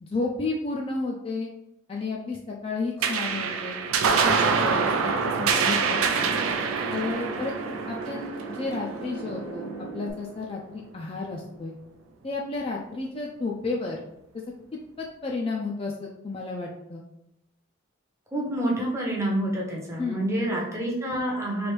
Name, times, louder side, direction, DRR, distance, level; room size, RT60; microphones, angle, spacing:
voice 1, 0.0-1.5 1.9-6.3 6.9-7.5 7.9-11.7 12.2-14.0 14.3-14.4 14.7-17.0 20.0-20.5, left 3 dB, 25° left, -1 dB, 0.3 m, -32 dB
sound 1, 3.0-9.8, right 5 dB, 85° right, 0.4 m, -26 dB
sound 2, 4.3-10.1, right 3 dB, 65° left, 0.9 m, -37 dB
voice 2, 18.3-21.7, right 1 dB, 15° right, -3 dB, 0.6 m, -28 dB
3.2 x 2.5 x 3.1 m, 0.82 s
head